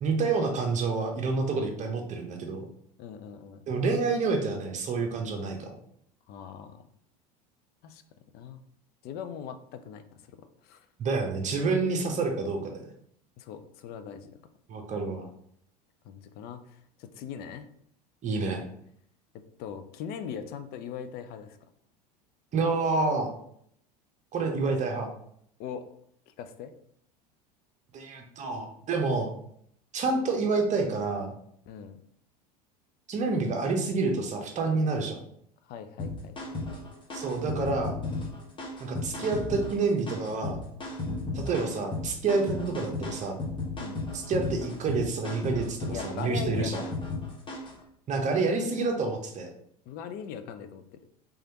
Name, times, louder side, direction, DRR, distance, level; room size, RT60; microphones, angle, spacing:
voice 1, 0.0-2.7 3.7-5.7 11.0-12.9 14.7-15.3 18.2-18.6 22.5-23.3 24.3-25.1 27.9-29.3 29.9-31.3 33.1-35.2 37.1-38.0 38.8-40.6 41.3-43.4 44.1-46.8 48.1-49.5, right 3 dB, 35° right, 3 dB, 0.9 m, -28 dB
voice 2, 3.0-3.6 6.3-6.9 7.8-8.0 8.3-8.6 9.0-10.9 13.4-14.3 16.0-17.7 19.6-21.6 25.6-25.9 26.3-26.7 31.7-32.0 35.7-36.6 41.3-41.5 43.8-44.0 45.9-46.9 49.9-51.0, left 7 dB, 50° left, 10 dB, 0.5 m, -40 dB
sound 1, 36.0-47.8, left 2 dB, 25° left, 1.2 m, -35 dB
3.5 x 3.3 x 2.9 m, 0.68 s
hypercardioid pair, 85°, 21 cm